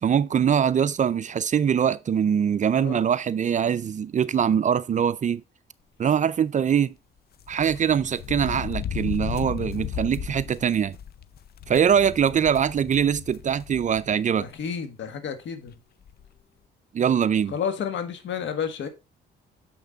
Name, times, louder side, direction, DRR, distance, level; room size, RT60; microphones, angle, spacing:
voice 1, 0.0-5.4 6.0-6.9 7.5-10.9 11.7-14.5 16.9-17.5, right 8 dB, 40° right, 0.4 m, -23 dB
sound 1, 7.4-14.1 14.5-14.6 15.7-15.8 16.0-16.3, left 9 dB, 55° left, 0.5 m, -35 dB
voice 2, 14.4-15.7 17.5-18.9, left 7 dB, 70° left, 1.6 m, -31 dB
6.7 x 5.8 x 3.9 m
cardioid pair, 90°, 20 cm